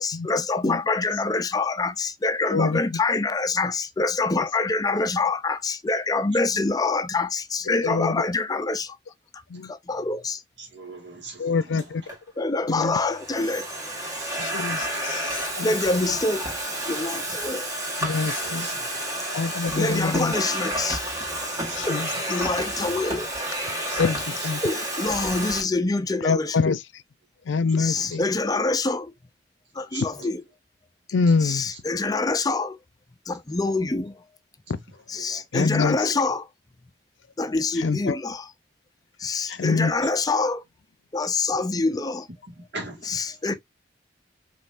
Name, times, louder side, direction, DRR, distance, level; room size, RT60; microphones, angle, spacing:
voice 1, 0.0-9.0 9.3-10.4 12.4-13.7 15.6-16.5 16.9-17.7 19.8-21.0 21.9-23.3 24.6-26.6 27.7-29.1 29.7-30.4 31.4-32.8 33.3-34.2 35.1-36.5 37.4-38.5 39.2-40.6 41.1-42.3 43.0-43.5, left 3 dB, 20° left, 0.4 m, -26 dB
voice 2, 7.8-8.2 9.5-9.7 11.4-12.0 12.7-12.9 14.4-15.7 16.1-16.2 18.0-18.7 19.3-20.3 21.7-22.1 24.0-24.6 26.2-26.8 27.5-28.2 31.1-31.6 35.5-36.0 37.8-38.2 39.5-39.9, left 4 dB, 85° left, 0.5 m, -25 dB
voice 3, 10.6-11.9 14.2-15.0 15.6-15.8 18.3-18.8 21.7-21.9 23.8-24.0 24.4-24.5 27.9-28.2 29.8-30.3 35.1-35.4 35.8-36.0 39.5-39.8 42.6-43.6, right 3 dB, 70° right, 1.8 m, -41 dB
Domestic sounds home sounds, 11.8-12.2 12.9-25.6, right 1 dB, 20° right, 1.8 m, -30 dB
5.4 x 3.1 x 2.5 m
head